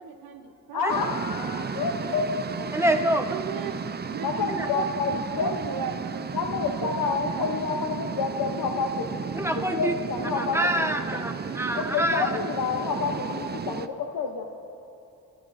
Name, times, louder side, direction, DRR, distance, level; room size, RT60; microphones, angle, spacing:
voice 1, 0.0-1.2 3.1-3.8 4.1-6.2 6.6-7.5, right 7 dB, 80° right, 7 dB, 0.9 m, -37 dB
voice 2, 0.7-2.4 4.2-5.5 6.3-9.1 9.5-11.2 11.8-14.4, left 5 dB, 75° left, 3 dB, 0.9 m, -29 dB
sound 1, 0.9-13.9, right 6 dB, 30° right, 0.5 m, -34 dB
voice 3, 2.7-3.2 4.5-4.7 9.3-9.9 10.4-12.3, right 1 dB, 10° right, 5 dB, 1.0 m, -26 dB
28.5 x 10.5 x 2.6 m, 2.8 s
cardioid pair, 70°, 34 cm